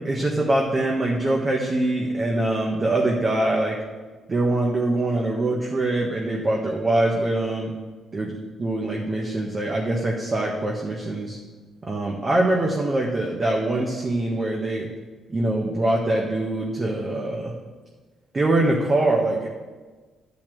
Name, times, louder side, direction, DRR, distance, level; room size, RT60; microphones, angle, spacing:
voice 1, 0.0-3.8 4.3-7.7 8.1-8.3 8.6-11.4 11.8-14.9 15.3-17.5 18.3-19.5, right 2 dB, 30° right, -1 dB, 1.5 m, -23 dB
10.5 x 5.8 x 7.7 m, 1.3 s
cardioid pair, 90°, 0 cm